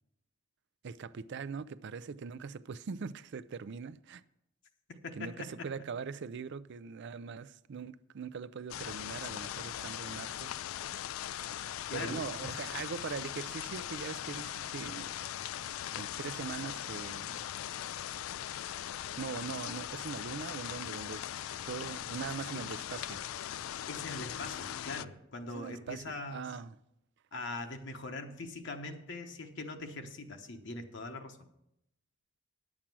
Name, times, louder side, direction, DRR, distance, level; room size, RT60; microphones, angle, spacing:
voice 1, 0.8-4.2 5.2-10.5 11.9-15.5 16.0-17.5 19.2-21.3 21.7-23.2 25.5-26.0 26.3-26.7, right 5 dB, 60° right, 0.4 m, -41 dB
voice 2, 5.0-5.7 11.9-12.6 23.9-26.5 27.3-31.5, left 2 dB, 65° left, 1.0 m, -42 dB
sound 1, 8.7-25.0, left 11 dB, 85° left, 0.3 m, -40 dB
10.0 x 7.4 x 6.1 m
head